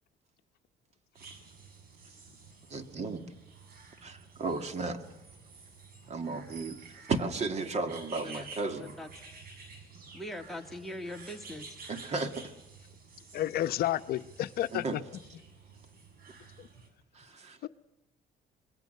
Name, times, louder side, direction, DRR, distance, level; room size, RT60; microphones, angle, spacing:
sound 1, 1.1-16.9, right 4 dB, 60° right, 7.1 m, -51 dB
voice 1, 2.7-3.3 4.0-5.0 6.1-6.8 7.1-8.9 11.9-12.5 14.7-14.9 17.4-17.6, right 3 dB, 40° right, 7 dB, 2.3 m, -34 dB
voice 2, 8.1-8.5 8.7-9.1 10.1-11.7, left 1 dB, ahead, 1 dB, 2.1 m, -41 dB
voice 3, 13.3-15.0 16.6-16.7 17.6-17.7, left 13 dB, 65° left, 12 dB, 0.8 m, -31 dB
27.0 x 21.5 x 6.6 m, 0.98 s
cardioid pair, 110°, 17 cm